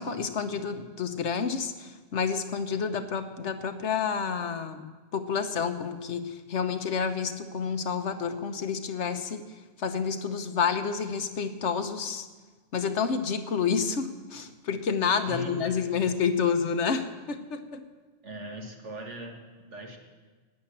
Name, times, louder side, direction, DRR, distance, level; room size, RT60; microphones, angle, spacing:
voice 1, 0.0-9.4 9.8-12.3 12.7-17.8, left 6 dB, 70° left, 9 dB, 1.2 m, -29 dB
voice 2, 15.3-16.1 18.2-20.0, equal, 70° right, 2 dB, 2.2 m, -40 dB
13.0 x 9.7 x 8.6 m, 1.4 s
omnidirectional pair, 1.2 m